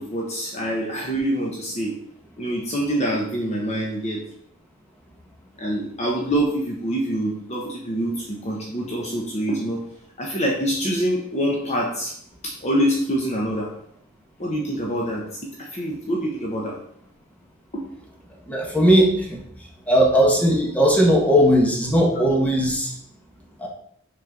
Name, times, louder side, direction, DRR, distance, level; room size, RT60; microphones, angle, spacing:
voice 1, 0.0-2.0 2.4-4.2 5.6-9.8 10.2-12.1 12.4-13.7 14.4-16.8 17.7-17.8, equal, 30° left, -2 dB, 1.1 m, -25 dB
voice 2, 18.5-19.4 19.9-22.9 23.6-23.7, equal, 5° left, -2 dB, 1.6 m, -18 dB
6.5 x 4.4 x 5.2 m, 0.67 s
head